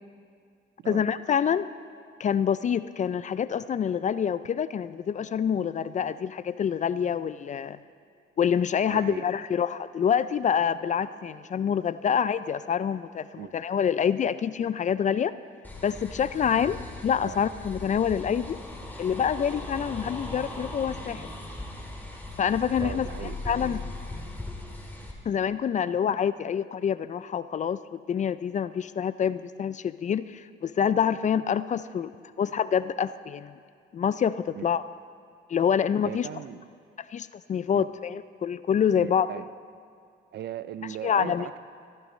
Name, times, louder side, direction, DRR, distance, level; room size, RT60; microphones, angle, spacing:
voice 1, 0.9-1.7 2.2-7.8 8.4-15.3 15.8-16.8 17.0-18.6 19.0-21.3 22.4-23.1 23.5-23.8 25.3-32.1 32.4-33.6 33.9-34.8 35.5-36.3 37.1-39.3 41.0-41.6, left 8 dB, 40° left, 15 dB, 0.4 m, -26 dB
voice 2, 8.9-9.3 12.1-12.2 13.4-13.5 16.5-16.6 17.2-17.4 22.8-23.5 26.1-26.2 34.5-34.7 36.0-36.6 37.7-37.8 38.9-39.5 40.3-41.6, right 10 dB, 60° right, 15 dB, 0.5 m, -38 dB
sound 1, 15.6-25.1, left 2 dB, 10° left, 2.0 m, -38 dB
15.5 x 13.5 x 3.2 m, 2.3 s
cardioid pair, 90°, 20 cm